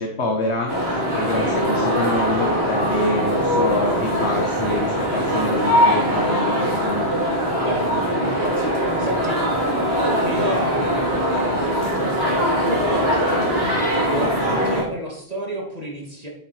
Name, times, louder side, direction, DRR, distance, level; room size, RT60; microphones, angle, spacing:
voice 1, 0.0-7.1, left 2 dB, 75° left, 2 dB, 1.5 m, -26 dB
sound 1, 0.7-14.8, equal, 65° right, 3.2 m, -21 dB
voice 2, 1.1-1.7 7.6-16.3, right 1 dB, 35° right, 0 dB, 2.5 m, -32 dB
9.4 x 7.5 x 4.9 m, 0.74 s
omnidirectional pair, 1.1 m